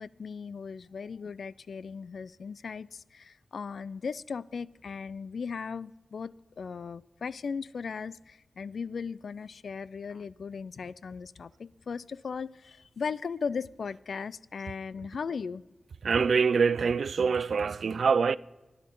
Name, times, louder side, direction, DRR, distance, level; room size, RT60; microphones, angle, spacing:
voice 1, 0.0-15.6, left 5 dB, 85° left, 0.3 m, -37 dB
voice 2, 16.0-18.4, right 5 dB, 85° right, 0.3 m, -25 dB
16.0 x 11.0 x 3.8 m
wide cardioid pair, 110°, 0 cm